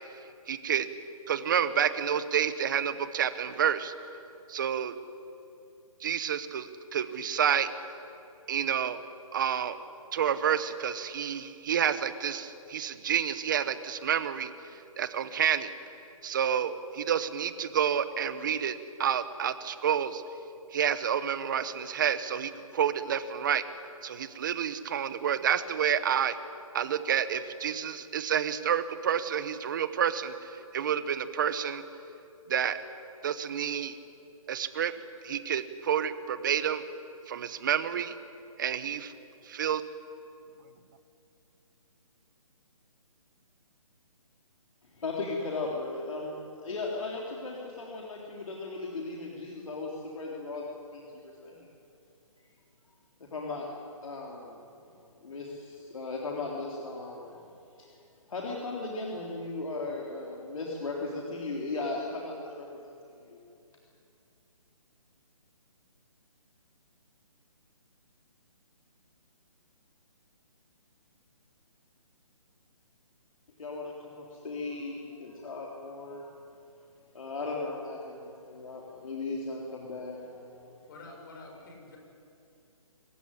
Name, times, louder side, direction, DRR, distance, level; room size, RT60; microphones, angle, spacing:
voice 1, 0.5-0.9 1.3-3.9 4.5-5.0 6.0-7.7 8.5-9.0 9.3-9.8 10.1-14.5 15.0-15.7 16.2-20.2 20.7-23.6 24.0-26.4 26.7-30.3 30.7-31.8 32.5-32.8 33.2-34.0 34.5-34.9 35.2-36.8 37.3-38.2 38.6-39.1 39.5-39.8, right 8 dB, 35° right, 12 dB, 1.1 m, -29 dB
voice 2, 45.0-46.4 46.6-51.7 53.2-53.7 54.0-54.6 55.2-57.5 57.8-57.9 58.3-62.9 63.2-63.4 73.6-76.3 77.1-80.8, left 3 dB, 65° left, -2 dB, 3.7 m, -37 dB
voice 3, 80.9-82.0, left 2 dB, 35° left, 1 dB, 6.2 m, -47 dB
24.5 x 15.0 x 10.0 m, 2.7 s
hypercardioid pair, 165°, 18 cm